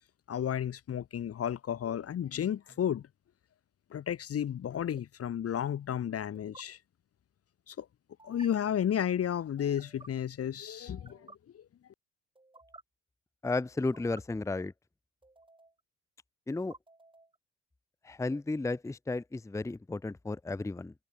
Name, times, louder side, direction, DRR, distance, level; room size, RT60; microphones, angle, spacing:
voice 1, 0.3-3.1 3.9-6.8 7.7-7.9 8.2-11.6, left 9 dB, 40° left, 0.9 m, -33 dB
sound 1, 2.7-3.0 4.7-5.0 6.3-6.6 8.2-8.5 9.6-10.1 10.9-11.4 12.4-12.8 13.7-14.2 15.2-15.8 16.5-17.4, right 2 dB, 15° right, 4.0 m, -55 dB
voice 2, 13.4-14.7 16.5-16.7 18.0-20.9, left 3 dB, 10° left, 0.7 m, -33 dB
hypercardioid pair, 65°, 36 cm